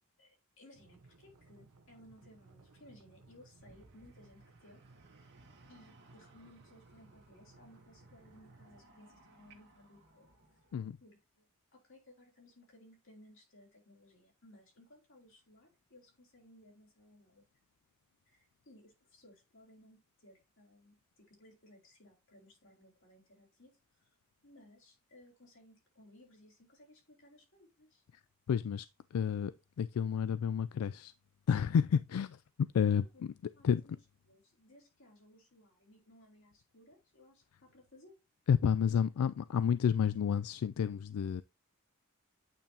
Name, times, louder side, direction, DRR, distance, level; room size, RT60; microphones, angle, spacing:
voice 1, 0.2-4.8 5.7-10.3 11.0-11.5 11.7-17.4 18.3-24.1 24.4-28.0 33.5-33.9 34.3-38.1, left 1 dB, 60° left, 4.4 m, -61 dB
sound 1, 0.7-8.8, right 3 dB, 85° right, 0.9 m, -61 dB
sound 2, 3.6-10.8, right 2 dB, 50° right, 1.8 m, -64 dB
voice 2, 28.5-28.9 29.1-31.1 31.5-33.3 33.6-33.8 38.5-41.4, left 7 dB, 85° left, 0.3 m, -30 dB
8.9 x 5.5 x 2.8 m
head